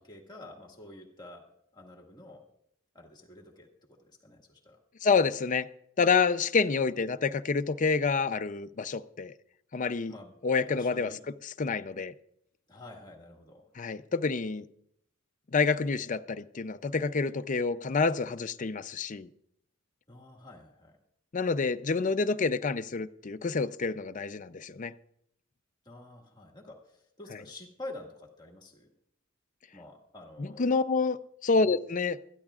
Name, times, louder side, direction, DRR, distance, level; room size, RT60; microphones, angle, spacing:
voice 1, 0.0-1.4 1.7-2.4 2.9-4.8 10.1-10.4 10.7-11.2 12.7-13.7 20.1-21.0 25.9-28.9 29.7-30.7 31.5-31.6, left 2 dB, 20° left, 1.8 m, -48 dB
voice 2, 5.0-5.7 6.0-9.3 9.7-10.1 10.4-12.1 13.8-14.6 15.5-19.3 21.3-24.9 30.4-31.2 31.4-32.2, left 4 dB, 35° left, 0.5 m, -28 dB
21.0 x 13.5 x 2.4 m
head